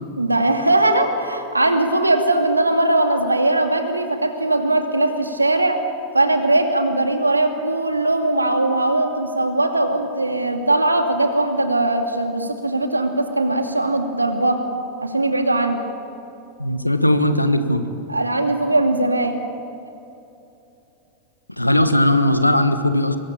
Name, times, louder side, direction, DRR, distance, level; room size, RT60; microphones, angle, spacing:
voice 1, 0.2-5.8 6.1-14.6 15.0-15.8 18.1-19.4, right 2 dB, 80° right, 6 dB, 2.4 m, -20 dB
voice 2, 16.6-17.9 21.6-23.2, left 1 dB, 85° left, 10 dB, 1.5 m, -18 dB
24.5 x 22.0 x 8.7 m, 2.8 s
figure-of-eight pair, 90°, 0 cm